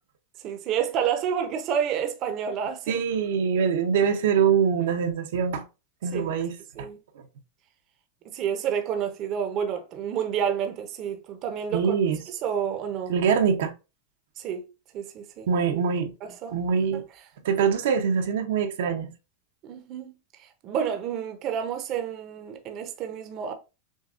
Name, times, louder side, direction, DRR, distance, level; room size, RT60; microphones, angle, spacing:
voice 1, 0.4-3.0 6.1-6.3 6.8-7.0 8.3-11.9 12.3-13.1 14.4-14.7 14.9-15.5 16.2-16.6 19.6-20.1 20.4-23.5, right 8 dB, 40° right, 0.7 m, -29 dB
voice 2, 2.9-5.6 6.0-6.9 11.7-12.2 13.1-13.7 15.5-16.1 16.5-17.0 17.4-19.1, right 7 dB, 75° right, 0.7 m, -24 dB
6.2 x 2.3 x 2.5 m
supercardioid pair, 140°, 0 cm